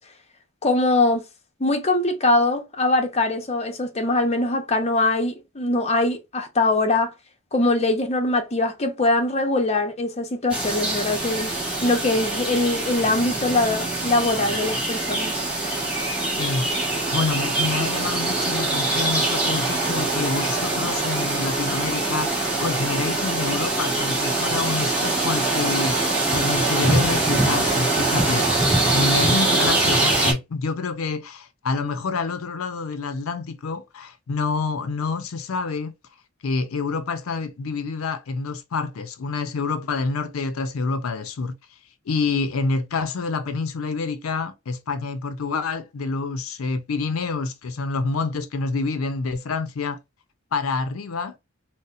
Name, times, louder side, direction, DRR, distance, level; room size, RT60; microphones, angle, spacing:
voice 1, 0.6-1.2 1.6-7.1 7.5-11.5 11.8-15.4, left 2 dB, 30° left, 0.6 m, -22 dB
sound 1, 10.5-30.3, right 2 dB, 5° right, 1.3 m, -23 dB
voice 2, 16.4-16.8 17.1-26.0 26.3-28.7 28.9-35.9 36.4-41.5 42.1-50.0 50.5-51.3, left 4 dB, 90° left, 0.5 m, -27 dB
4.0 x 2.0 x 2.4 m
head